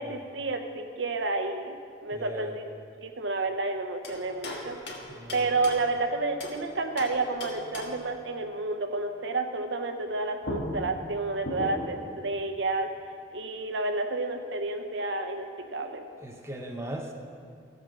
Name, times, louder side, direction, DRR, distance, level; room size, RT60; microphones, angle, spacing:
voice 1, 0.0-2.6 3.0-4.8 5.3-12.9 13.3-16.1, right 3 dB, 70° right, 6 dB, 0.8 m, -30 dB
voice 2, 2.1-2.6 5.1-5.6 16.2-17.1, right 1 dB, 15° right, 2 dB, 0.7 m, -39 dB
sound 1, 4.0-6.6 7.0-8.1 10.1-10.2 10.4-12.1, left 1 dB, 60° left, 1.4 m, -38 dB
15.5 x 5.3 x 6.4 m, 2.3 s
head